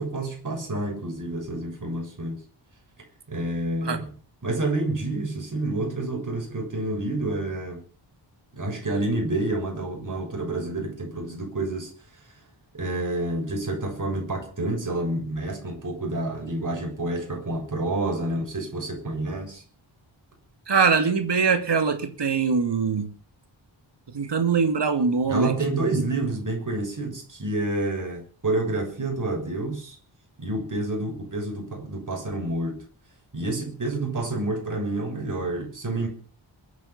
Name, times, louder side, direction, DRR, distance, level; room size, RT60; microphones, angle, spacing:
voice 1, 0.0-2.4 3.3-4.1 4.4-7.8 8.5-11.9 12.7-19.6 25.3-30.0 30.4-32.8 33.3-36.1, right 2 dB, 40° right, 2 dB, 6.8 m, -28 dB
voice 2, 20.7-23.1 24.1-25.5, right 5 dB, 60° right, 7 dB, 2.5 m, -22 dB
22.5 x 9.7 x 6.0 m, 0.42 s
wide cardioid pair, 140°, 47 cm